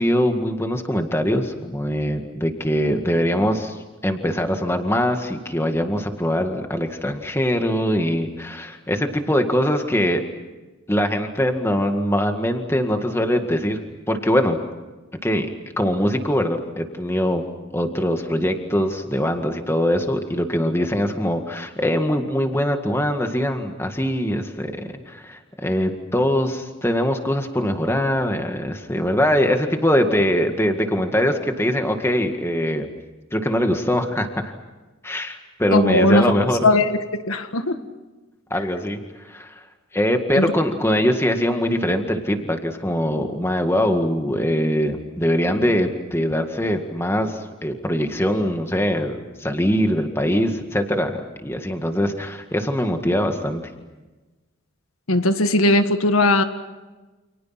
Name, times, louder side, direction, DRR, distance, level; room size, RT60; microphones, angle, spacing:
voice 1, 0.0-3.8 4.0-10.2 10.9-13.8 14.1-14.6 15.2-15.5 15.8-17.4 17.7-24.7 25.1-32.9 33.3-34.5 35.0-36.6 38.5-39.5 39.9-53.6, equal, 10° left, 5 dB, 2.0 m, -22 dB
voice 2, 35.7-36.4 36.6-37.0 37.3-37.8 40.3-40.5 55.1-56.4, left 2 dB, 90° left, 8 dB, 1.8 m, -18 dB
30.0 x 28.0 x 6.0 m, 1.2 s
head